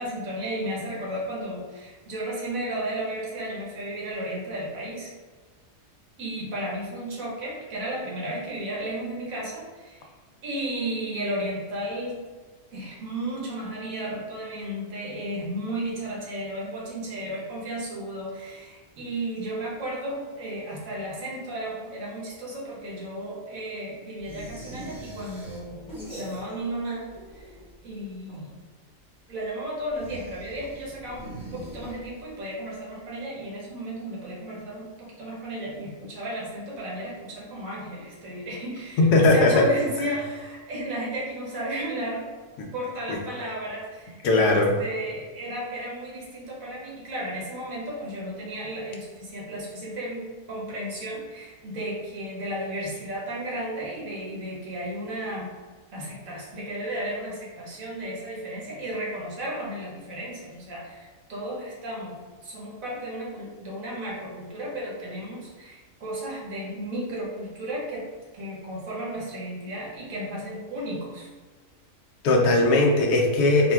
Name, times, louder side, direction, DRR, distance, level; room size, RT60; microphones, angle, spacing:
voice 1, 0.0-5.1 6.2-10.0 10.4-12.2 12.7-27.5 27.8-28.5 29.3-42.3 42.7-55.5 55.9-62.2 62.4-68.1 68.3-71.3, right 1 dB, 90° right, -4 dB, 1.3 m, -33 dB
sound 1, 24.2-26.8 27.1-27.9 29.9-32.4, right 1 dB, 5° right, 0.8 m, -42 dB
voice 2, 39.0-39.6 44.2-44.7 72.2-73.7, left 2 dB, 90° left, 1 dB, 1.0 m, -19 dB
3.9 x 2.2 x 2.2 m, 1.4 s
omnidirectional pair, 1.4 m